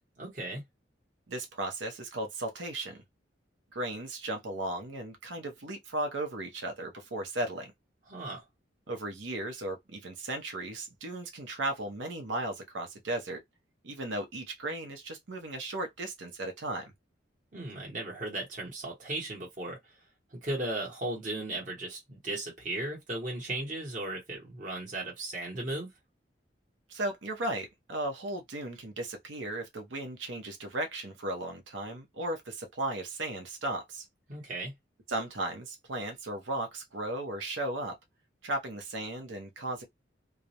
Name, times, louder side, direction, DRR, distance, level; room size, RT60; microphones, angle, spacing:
voice 1, 0.2-0.6 8.1-8.4 17.5-19.8 20.4-25.9 34.3-34.7, right 2 dB, 45° right, 1.0 m, -36 dB
voice 2, 1.3-3.0 3.7-7.7 8.9-13.4 13.8-16.9 26.9-34.0 35.1-38.0 38.4-39.8, right 2 dB, 80° right, 0.7 m, -36 dB
2.3 x 2.0 x 2.7 m
head